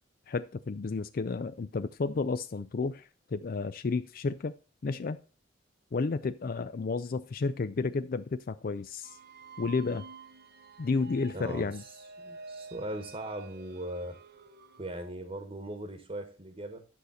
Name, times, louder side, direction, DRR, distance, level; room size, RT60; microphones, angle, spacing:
voice 1, 0.3-4.5 4.8-5.2 5.9-9.2 9.6-10.0 10.8-11.8, left 4 dB, 50° left, 0.4 m, -32 dB
sound 1, 9.0-14.9, right 4 dB, 60° right, 1.0 m, -49 dB
voice 2, 11.3-14.2 14.8-16.9, right 1 dB, 35° right, 1.2 m, -39 dB
10.5 x 6.5 x 4.1 m
head